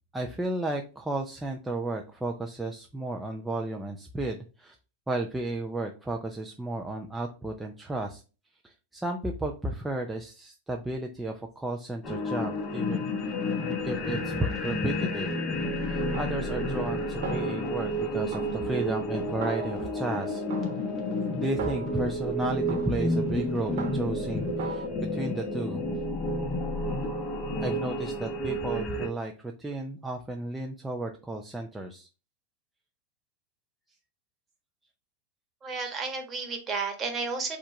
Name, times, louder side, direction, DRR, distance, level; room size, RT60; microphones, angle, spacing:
voice 1, 0.1-4.8 5.1-8.2 8.6-13.0 13.8-15.4 15.9-20.4 21.4-24.9 25.1-25.9 27.6-32.1, right 2 dB, 5° right, 1 dB, 0.5 m, -33 dB
sound 1, 12.0-29.1, left 1 dB, 25° left, 1.3 m, -30 dB
Snare drum, 16.1-17.0 17.2-18.0 18.3-20.1 20.5-22.2 22.7-24.3 24.6-24.9, right 5 dB, 65° right, 1.1 m, -41 dB
voice 2, 35.6-37.6, right 4 dB, 25° right, 4 dB, 1.2 m, -32 dB
4.5 x 2.5 x 4.3 m, 0.34 s
hypercardioid pair, 115°, 0 cm